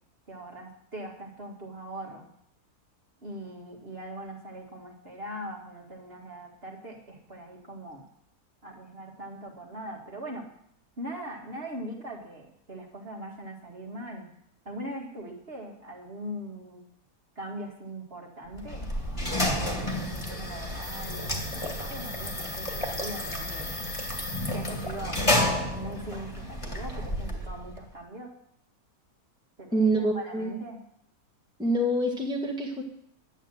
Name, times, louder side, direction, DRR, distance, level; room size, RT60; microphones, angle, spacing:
voice 1, 0.3-2.3 3.2-8.0 8.6-10.5 11.0-14.3 14.7-16.8 17.4-18.9 19.4-23.8 24.5-25.2 25.7-28.3 29.6-30.8, right 1 dB, 40° right, 0 dB, 2.0 m, -41 dB
sound 1, 18.5-27.8, left 1 dB, 20° left, 1.9 m, -31 dB
voice 2, 29.7-30.6 31.6-32.8, right 1 dB, 5° right, 0 dB, 1.5 m, -26 dB
11.0 x 8.3 x 7.5 m, 0.71 s
omnidirectional pair, 1.6 m